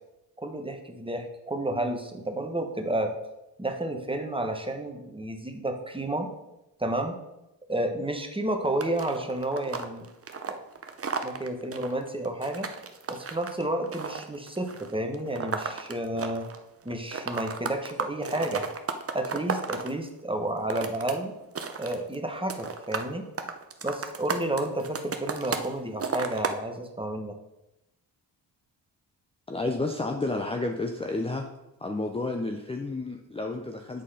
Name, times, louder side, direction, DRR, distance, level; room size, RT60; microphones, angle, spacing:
voice 1, 0.4-3.1 3.6-6.3 6.8-7.2 7.7-10.1 10.5-10.6 11.2-12.7 13.1-16.4 16.8-18.6 19.1-21.3 21.8-23.2 23.8-27.3, right 1 dB, 10° right, 4 dB, 1.2 m, -31 dB
sound 1, 8.8-16.6 16.9-19.9 20.5-21.1 21.4-22.2 22.5-23.1 23.4-25.7 26.0-26.6, right 5 dB, 35° right, 0.8 m, -33 dB
voice 2, 29.5-31.4 31.8-34.0, left 2 dB, 15° left, 3 dB, 0.7 m, -31 dB
7.7 x 4.1 x 5.0 m, 0.91 s
cardioid pair, 60°, 43 cm